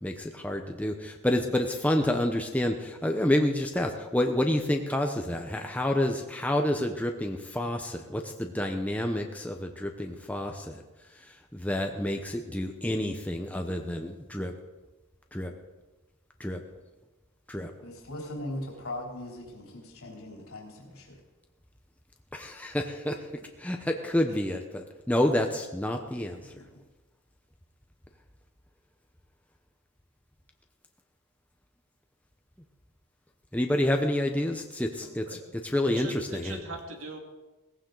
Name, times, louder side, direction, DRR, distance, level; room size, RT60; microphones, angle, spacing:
voice 1, 0.0-14.5 15.3-15.5 16.4-16.6 17.5-17.7 22.3-26.6 33.5-36.6, left 1 dB, 5° left, 3 dB, 0.8 m, -29 dB
voice 2, 17.8-21.2 26.6-26.7, left 1 dB, 75° left, -2 dB, 3.4 m, -39 dB
voice 3, 35.0-35.4 35.8-37.2, right 2 dB, 65° right, 2 dB, 2.3 m, -40 dB
18.0 x 15.0 x 3.9 m, 1.2 s
head